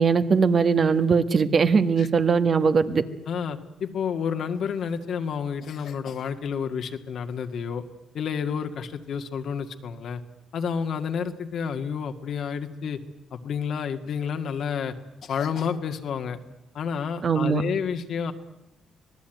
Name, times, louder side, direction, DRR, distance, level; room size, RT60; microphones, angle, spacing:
voice 1, 0.0-3.0 17.2-17.6, right 5 dB, 45° right, 10 dB, 1.5 m, -20 dB
voice 2, 3.3-7.8 8.1-10.2 10.5-13.0 13.3-14.9 15.2-16.4 16.7-18.3, left 7 dB, 65° left, 6 dB, 2.0 m, -30 dB
26.0 x 18.5 x 9.2 m, 0.92 s
cardioid pair, 90°, 0 cm